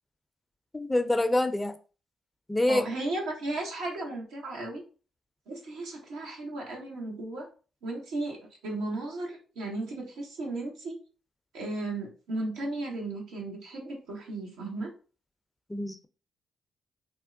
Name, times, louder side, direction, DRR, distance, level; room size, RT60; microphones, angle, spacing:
voice 1, 0.7-1.8 2.5-2.8 15.7-16.1, left 1 dB, 20° left, 9 dB, 0.4 m, -26 dB
voice 2, 2.7-4.8 5.5-7.5 7.8-11.0 11.5-14.9, right 2 dB, 80° right, -1 dB, 0.9 m, -35 dB
3.4 x 2.1 x 2.5 m, 0.36 s
supercardioid pair, 50°, 0 cm